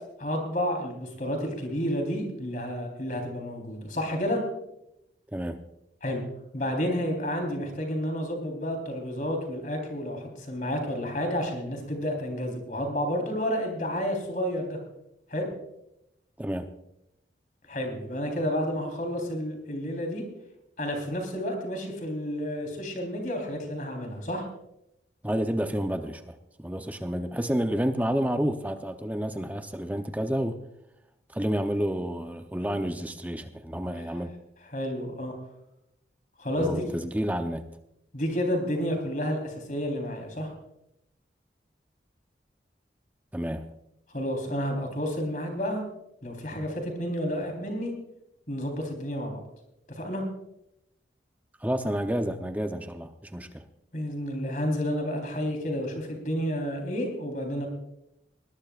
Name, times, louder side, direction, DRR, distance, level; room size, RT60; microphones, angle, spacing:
voice 1, 0.2-4.4 6.0-6.2 6.5-14.8 15.3-15.5 17.7-20.2 20.8-24.4 34.7-35.3 36.4-36.9 38.1-40.5 44.1-45.8 46.2-47.9 48.5-49.4 50.0-50.2 53.9-57.7, equal, 45° left, 3.9 m, -30 dB
voice 2, 5.3-5.6 16.4-16.7 25.2-30.6 31.3-34.3 36.6-37.8 43.3-43.7 51.6-53.6, equal, 10° right, 0.7 m, -30 dB
20.0 x 20.0 x 2.5 m
head